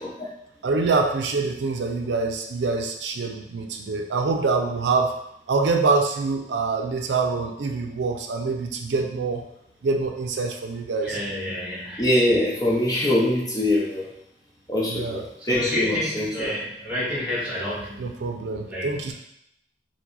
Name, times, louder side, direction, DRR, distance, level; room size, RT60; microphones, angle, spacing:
voice 1, 0.6-5.2 5.5-9.5 9.8-11.2 14.9-15.3 18.0-19.1, right 4 dB, 85° right, 3 dB, 0.4 m, -25 dB
voice 2, 11.0-12.0 15.5-18.1 18.7-19.1, left 1 dB, 10° right, -7 dB, 1.6 m, -29 dB
voice 3, 12.0-14.0 14.7-15.2 15.5-16.5, left 1 dB, 20° left, -5 dB, 0.7 m, -23 dB
4.7 x 2.1 x 3.9 m, 0.77 s
head